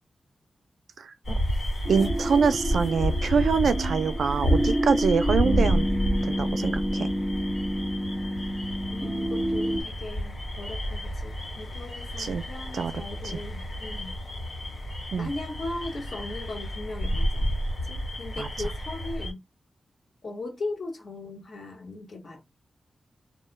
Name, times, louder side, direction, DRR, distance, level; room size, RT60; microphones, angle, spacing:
sound 1, 1.2-19.3, equal, 70° left, 1.4 m, -30 dB
sound 2, 1.8-9.8, equal, 5° right, 0.4 m, -29 dB
voice 1, 1.9-5.9 6.2-7.1 12.2-12.4 12.7-12.9 15.1-15.3 18.4-18.5, right 5 dB, 90° right, 0.4 m, -25 dB
voice 2, 8.9-14.2 15.2-17.5 17.8-19.4 20.2-22.4, left 2 dB, 55° left, 1.0 m, -38 dB
2.2 x 2.2 x 3.1 m
wide cardioid pair, 155°, 0 cm